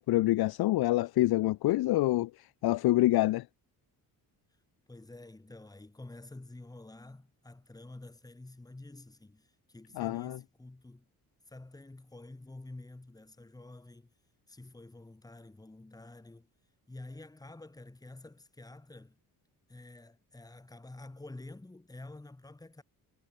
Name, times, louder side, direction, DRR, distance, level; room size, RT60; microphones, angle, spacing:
voice 1, 0.0-3.4 10.0-10.4, left 17 dB, 80° left, 0.6 m, -26 dB
voice 2, 4.9-11.1 11.5-14.1 14.5-16.5 16.9-19.2 19.7-22.8, left 2 dB, 10° left, 5.9 m, -49 dB
wide cardioid pair, 175°, 37 cm